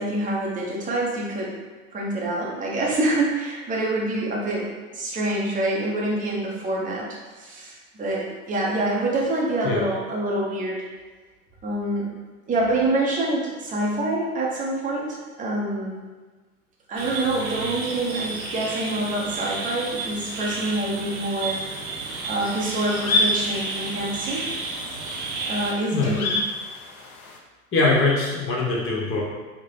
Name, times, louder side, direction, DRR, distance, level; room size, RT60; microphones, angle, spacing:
voice 1, 0.0-1.6 1.9-7.1 7.3-10.9 11.6-12.1 12.5-16.0 16.9-22.0 22.3-24.5 25.4-26.4, right 2 dB, 20° right, -4 dB, 0.8 m, -26 dB
sound 1, 17.0-25.7, right 3 dB, 70° right, 0.9 m, -32 dB
sound 2, 22.0-27.4, left 2 dB, 75° left, 0.7 m, -29 dB
voice 2, 27.7-29.2, left 3 dB, 30° left, -4 dB, 1.2 m, -22 dB
3.6 x 2.2 x 3.3 m, 1.3 s
hypercardioid pair, 95°, 43 cm